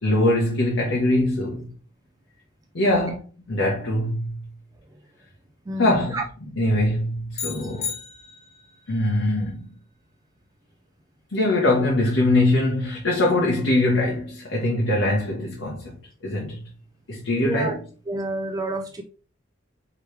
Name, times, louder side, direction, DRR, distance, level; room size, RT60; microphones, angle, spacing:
voice 1, 0.0-1.7 2.7-3.2 3.5-4.4 5.8-6.2 6.6-7.9 8.9-9.7 11.3-16.0 16.2-16.6 17.1-17.8, left 1 dB, 70° left, 1.0 m, -22 dB
voice 2, 5.7-6.2 17.4-17.8 18.1-19.0, right 2 dB, 20° right, 0.3 m, -29 dB
sound 1, 7.3-8.8, left 6 dB, 35° left, 0.5 m, -33 dB
4.8 x 3.1 x 3.2 m
head